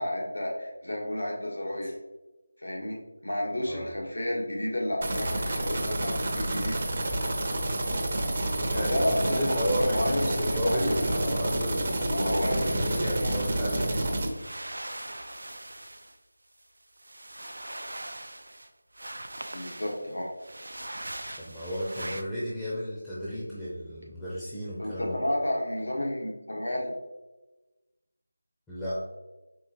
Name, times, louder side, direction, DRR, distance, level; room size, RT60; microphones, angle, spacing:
voice 1, 0.0-1.9 2.6-3.0 3.2-6.8 8.7-10.3 10.6-11.4 12.0-14.0 19.5-20.3 24.8-27.0, left 1 dB, 85° left, -2 dB, 1.4 m, -31 dB
sound 1, 5.0-14.3, right 1 dB, 45° right, 0.7 m, -29 dB
voice 2, 8.7-12.0 12.6-14.4 21.4-25.2 28.7-29.0, equal, 5° left, -12 dB, 0.6 m, -33 dB
sound 2, 12.1-13.7 14.2-16.2 16.6-18.7 18.9-22.2, right 1 dB, 80° right, 0.4 m, -41 dB
4.5 x 3.1 x 2.9 m, 1.1 s
figure-of-eight pair, 170°, 0 cm